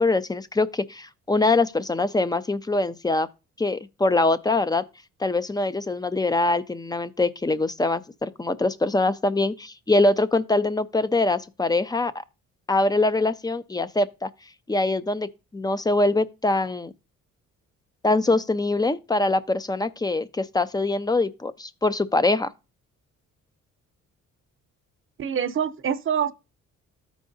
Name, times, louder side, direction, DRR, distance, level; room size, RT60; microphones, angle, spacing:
voice 1, 0.0-3.3 3.6-4.8 5.2-12.1 12.7-14.3 14.7-16.9 18.0-22.5, left 2 dB, 15° left, 0.4 m, -23 dB
voice 2, 25.2-26.3, right 8 dB, 45° right, 0.7 m, -25 dB
13.5 x 4.7 x 2.6 m
cardioid pair, 90°, 30 cm